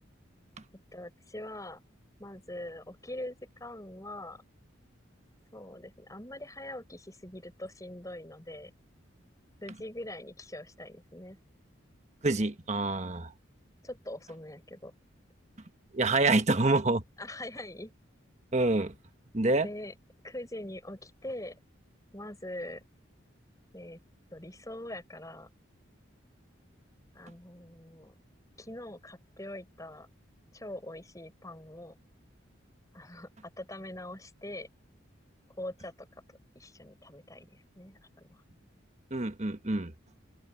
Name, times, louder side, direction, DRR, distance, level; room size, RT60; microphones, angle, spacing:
voice 1, 0.9-1.8 2.2-4.4 5.5-8.7 9.6-11.4 13.8-14.9 17.2-17.9 19.6-19.9 20.2-21.6 22.1-22.8 23.7-24.0 24.3-25.5 27.1-28.1 28.6-30.1 30.5-31.9 32.9-33.3 33.6-34.7 35.6-36.2 36.5-38.4, left 1 dB, 15° left, 5.7 m, -43 dB
voice 2, 12.2-13.3 15.9-17.0 18.5-18.9 19.3-19.7 39.1-39.9, right 2 dB, 35° right, 1.3 m, -26 dB
open air
head